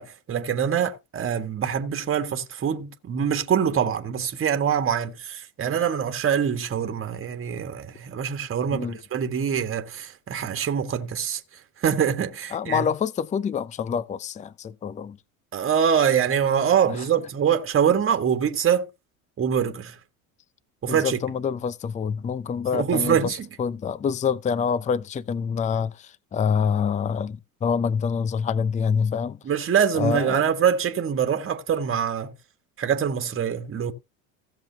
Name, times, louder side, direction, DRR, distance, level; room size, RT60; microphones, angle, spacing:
voice 1, 0.0-12.9 15.5-18.9 19.4-20.0 20.8-21.2 22.7-23.5 29.4-32.3 32.8-33.9, right 8 dB, 30° right, 1.6 m, -24 dB
voice 2, 12.5-15.2 20.9-23.3 23.6-29.4 30.0-30.4, left 6 dB, 15° left, 0.5 m, -26 dB
16.5 x 7.1 x 2.8 m
hypercardioid pair, 85°, 45 cm